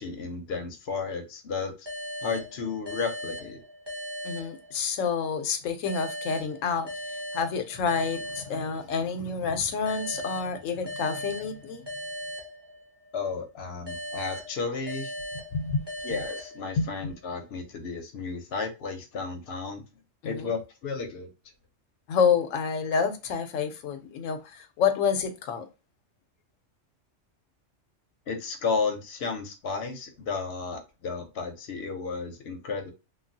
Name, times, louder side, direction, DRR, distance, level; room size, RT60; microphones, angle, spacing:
voice 1, 0.0-1.9 2.2-3.6 13.1-15.1 16.0-19.8 20.2-21.3 28.3-32.9, left 4 dB, 60° left, 0.9 m, -33 dB
sound 1, 1.9-5.2 5.9-9.2 9.9-13.2 13.9-17.2, equal, 20° right, 1.1 m, -39 dB
voice 2, 4.2-6.9 7.3-11.9 15.5-15.8 16.8-17.1 20.2-20.5 22.1-25.7, left 6 dB, 85° left, 1.0 m, -28 dB
3.1 x 2.3 x 2.6 m
omnidirectional pair, 1.3 m